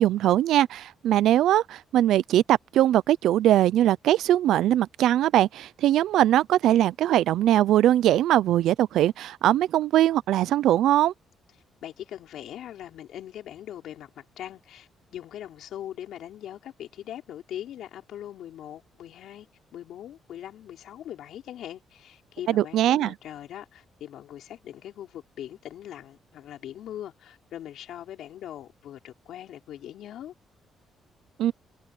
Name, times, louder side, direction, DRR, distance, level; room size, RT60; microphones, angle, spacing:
voice 1, 0.0-11.1 22.5-23.1 31.4-31.5, right 12 dB, 80° right, 0.5 m, -21 dB
voice 2, 11.8-19.5 19.7-30.3, left 11 dB, 75° left, 5.2 m, -41 dB
cardioid pair, 90°, 0 cm